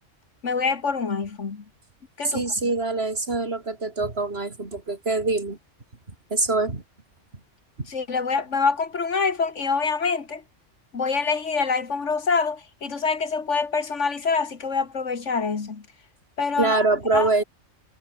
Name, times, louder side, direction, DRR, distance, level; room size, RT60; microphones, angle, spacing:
voice 1, 0.4-1.6 2.2-2.4 7.9-10.4 10.9-15.8 16.4-16.8 17.1-17.3, left 5 dB, 70° left, 2.1 m, -25 dB
voice 2, 2.2-5.6 6.3-6.8 16.6-17.4, right 3 dB, 55° right, 3.4 m, -24 dB
omnidirectional pair, 1.3 m